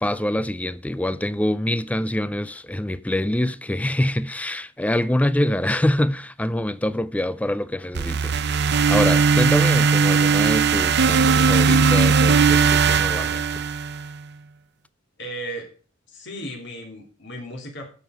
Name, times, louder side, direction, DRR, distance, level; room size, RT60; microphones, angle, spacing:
voice 1, 0.0-13.6, left 1 dB, 5° left, 0.4 m, -25 dB
sound 1, 7.9-14.1, right 5 dB, 60° right, 0.6 m, -18 dB
voice 2, 15.2-15.7 16.1-17.9, equal, 65° left, 2.8 m, -35 dB
12.0 x 7.0 x 4.9 m
head